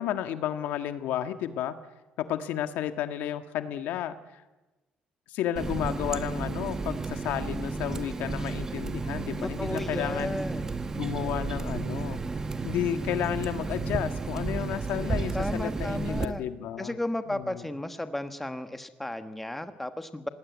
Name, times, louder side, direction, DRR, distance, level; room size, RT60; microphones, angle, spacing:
voice 1, 0.0-1.7 2.2-4.1 5.3-10.4 10.9-12.2 12.6-17.0 17.3-17.6, left 11 dB, 90° left, 9 dB, 1.6 m, -32 dB
Water tap faucet, 5.6-16.3, right 4 dB, 20° right, 1.1 m, -32 dB
voice 2, 9.4-10.7 15.3-16.4 16.8-20.3, left 1 dB, 5° left, 9 dB, 1.3 m, -34 dB
25.5 x 20.0 x 9.4 m, 1.1 s
cardioid pair, 155°, 3 cm